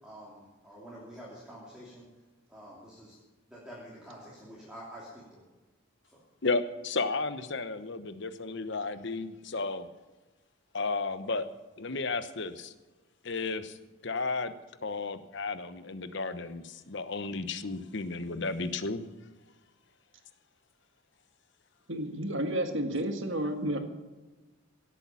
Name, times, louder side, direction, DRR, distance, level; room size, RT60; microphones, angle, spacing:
voice 1, 0.0-2.0 2.5-3.2 3.5-5.4 6.0-6.2, equal, 5° right, -6 dB, 2.9 m, -48 dB
voice 2, 6.4-9.9 10.7-11.5 11.8-12.7 13.2-13.8 14.0-14.5 14.8-19.0, left 3 dB, 55° left, 12 dB, 1.0 m, -33 dB
voice 3, 21.9-23.8, right 1 dB, 60° right, 5 dB, 1.8 m, -31 dB
17.0 x 8.5 x 7.1 m, 1.2 s
head